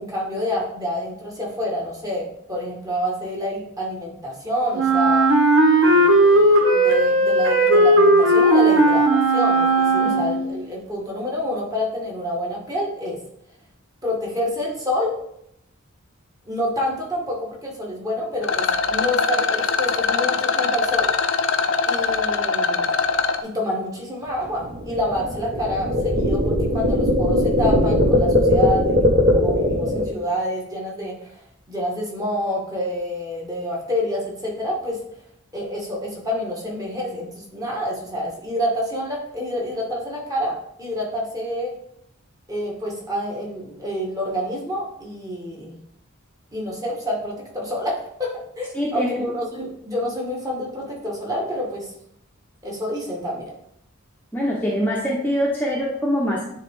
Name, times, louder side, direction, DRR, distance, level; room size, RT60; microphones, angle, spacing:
voice 1, 0.0-5.2 5.8-13.2 14.0-15.2 16.4-21.1 21.9-22.9 23.4-31.4 31.7-35.0 35.5-41.7 42.5-45.8 46.5-51.9 52.6-53.5, equal, 15° right, -3 dB, 1.7 m, -28 dB
Wind instrument woodwind instrument, 4.7-10.6, right 1 dB, 75° right, 1.0 m, -16 dB
Rattle, 18.4-23.4, left 5 dB, 60° left, 0.5 m, -22 dB
sound 1, 24.3-30.0, left 1 dB, 45° right, 1.5 m, -19 dB
voice 2, 48.7-49.3 54.3-56.4, equal, 10° left, -4 dB, 0.9 m, -23 dB
9.6 x 3.6 x 3.7 m, 0.74 s
head